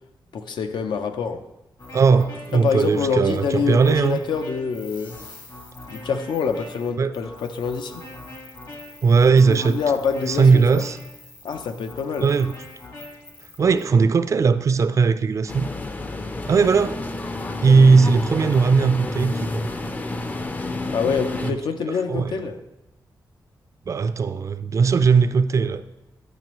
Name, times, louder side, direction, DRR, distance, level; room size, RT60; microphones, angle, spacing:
voice 1, 0.3-1.4 2.5-5.2 5.9-8.0 9.3-10.8 11.4-12.3 20.9-22.6, left 6 dB, 80° left, 8 dB, 0.5 m, -26 dB
sound 1, 1.8-13.8, left 2 dB, 60° left, 1.6 m, -42 dB
voice 2, 1.9-4.2 7.0-7.1 9.0-9.8 10.3-11.0 12.2-12.5 13.6-15.7 16.5-17.1 17.6-19.7 21.4-21.6 21.9-22.4 23.9-25.8, right 5 dB, 40° right, 12 dB, 0.4 m, -18 dB
sound 2, 15.5-21.5, left 2 dB, 20° left, 0.4 m, -29 dB
9.1 x 6.0 x 3.0 m, 0.97 s
wide cardioid pair, 115°, 8 cm